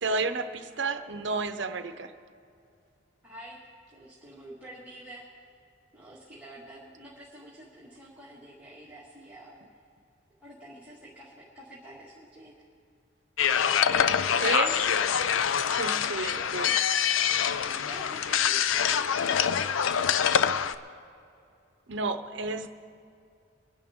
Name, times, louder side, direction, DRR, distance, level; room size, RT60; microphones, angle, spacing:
voice 1, 0.0-2.1 14.4-14.8 15.6-16.8 21.9-22.7, right 3 dB, 65° right, 9 dB, 0.8 m, -31 dB
voice 2, 3.2-3.6 3.9-5.5 5.9-9.6 10.4-12.5 13.8-14.8 17.6-20.9, right 1 dB, 10° right, -8 dB, 2.0 m, -48 dB
sound 1, 13.4-20.7, left 8 dB, 85° left, 0.5 m, -25 dB
24.0 x 10.5 x 3.7 m, 2.5 s
head